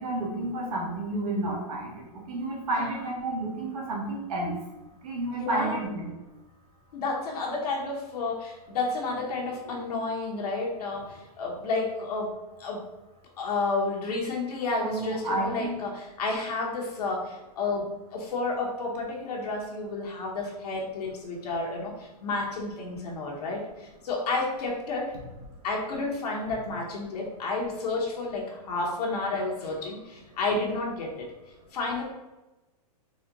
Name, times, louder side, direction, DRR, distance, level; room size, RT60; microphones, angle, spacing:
voice 1, 0.0-2.0 2.3-4.6 5.0-6.1 14.8-15.7, right 2 dB, 65° right, -3 dB, 1.4 m, -31 dB
voice 2, 5.4-5.8 6.9-12.8 13.4-25.1 25.6-31.3 31.7-32.0, left 3 dB, 70° left, -2 dB, 1.0 m, -31 dB
4.1 x 2.1 x 3.9 m, 1.1 s
hypercardioid pair, 140°, 21 cm